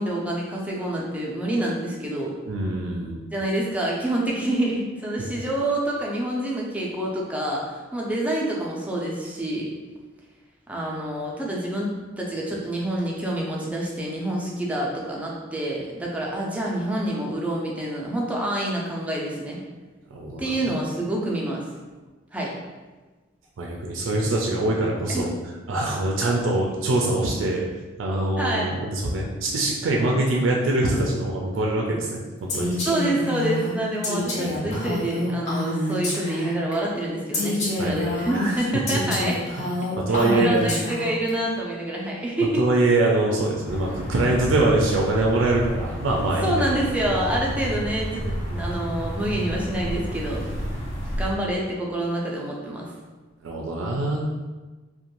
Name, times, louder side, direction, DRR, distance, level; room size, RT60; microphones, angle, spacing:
voice 1, 0.0-2.3 3.3-9.7 10.7-19.6 20.4-21.6 22.3-22.5 25.1-25.3 28.4-28.7 32.8-39.4 40.1-42.7 46.4-50.4 51.1-52.9, right 1 dB, 5° right, -4 dB, 0.4 m, -27 dB
voice 2, 2.5-3.2 20.1-20.8 23.6-25.3 25.7-27.6 28.0-32.8 34.5-35.0 37.8-38.5 40.0-40.7 42.6-46.6 53.4-54.3, right 2 dB, 80° right, -2 dB, 0.4 m, -24 dB
Female speech woman speaking, 32.5-36.7 37.3-41.3, left 1 dB, 35° left, 0.6 m, -27 dB
sound 1, 43.6-51.3, equal, 85° left, 0.7 m, -31 dB
2.5 x 2.2 x 2.9 m, 1.2 s
head